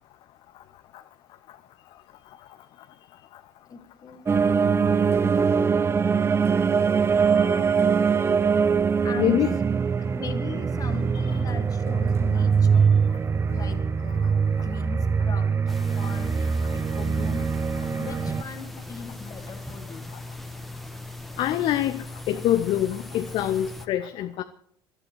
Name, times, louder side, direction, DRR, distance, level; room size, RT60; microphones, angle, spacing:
voice 1, 3.7-5.2 6.9-7.8 9.0-9.3 10.1-12.9 13.5-15.6 16.0-17.5 18.0-20.1, left 5 dB, 30° left, 1.8 m, -40 dB
sound 1, 4.3-18.4, right 6 dB, 20° right, 0.5 m, -23 dB
voice 2, 9.2-9.5 11.3-11.4 21.4-24.4, left 12 dB, 45° left, 0.6 m, -25 dB
sound 2, 15.7-23.9, left 2 dB, ahead, 1.4 m, -39 dB
27.5 x 12.5 x 3.2 m
figure-of-eight pair, 60°, 12 cm